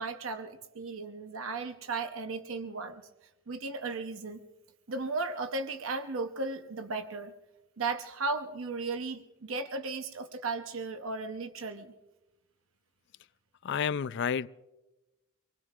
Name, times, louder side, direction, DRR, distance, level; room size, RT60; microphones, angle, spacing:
voice 1, 0.0-3.0 3.5-4.4 4.9-7.3 7.8-11.9, right 3 dB, 90° right, 0.8 m, -35 dB
voice 2, 13.6-14.5, left 7 dB, 60° left, 0.4 m, -30 dB
25.0 x 20.0 x 2.4 m
head